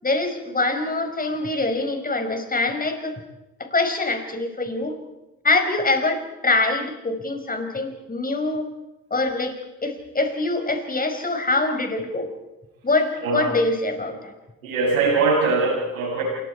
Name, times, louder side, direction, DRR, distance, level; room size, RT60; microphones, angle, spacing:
voice 1, 0.0-3.2 3.6-5.0 5.4-8.7 9.1-12.3 12.8-14.3, left 2 dB, 20° left, 6 dB, 5.4 m, -24 dB
voice 2, 13.2-13.5 14.6-16.2, right 4 dB, 85° right, 0 dB, 7.3 m, -21 dB
28.0 x 24.5 x 4.8 m, 1.0 s
hypercardioid pair, 55°, 40 cm